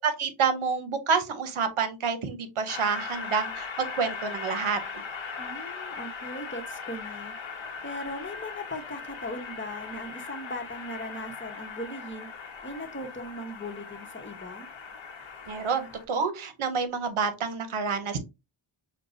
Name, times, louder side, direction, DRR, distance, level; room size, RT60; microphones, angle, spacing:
voice 1, 0.0-4.8 15.5-18.2, right 5 dB, 75° right, 8 dB, 0.9 m, -28 dB
Train, 2.7-16.0, left 5 dB, 70° left, 0.9 m, -39 dB
voice 2, 5.4-7.4 7.8-12.3 12.6-14.7, left 1 dB, 25° left, 4 dB, 0.9 m, -38 dB
6.5 x 2.2 x 2.6 m, 0.25 s
wide cardioid pair, 85°, 49 cm